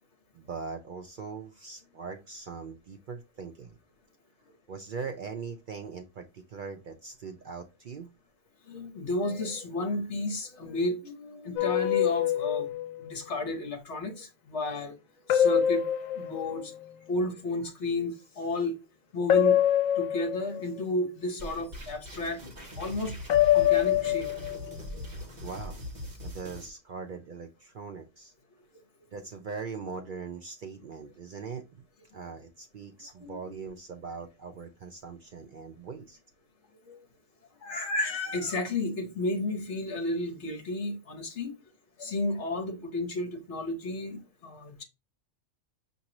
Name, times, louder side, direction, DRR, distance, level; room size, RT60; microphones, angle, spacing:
voice 1, 0.3-3.8 4.7-8.1 25.4-25.8 26.2-28.3 29.1-31.6 32.1-36.2, right 5 dB, 65° right, 0.5 m, -41 dB
voice 2, 8.7-12.7 13.0-14.9 15.3-15.8 16.1-16.7 17.1-18.7 19.1-19.6 20.0-22.4 22.8-23.2 23.5-24.3 24.9-25.0 33.2-33.4 36.9-37.0 37.6-41.5 42.0-44.8, left 2 dB, 60° left, 1.3 m, -32 dB
sound 1, 11.6-12.9 15.3-16.8 19.3-20.8 23.3-24.7, left 11 dB, 90° left, 1.0 m, -25 dB
sound 2, 21.4-26.7, left 1 dB, 35° right, 1.1 m, -41 dB
6.0 x 2.7 x 2.9 m
omnidirectional pair, 1.4 m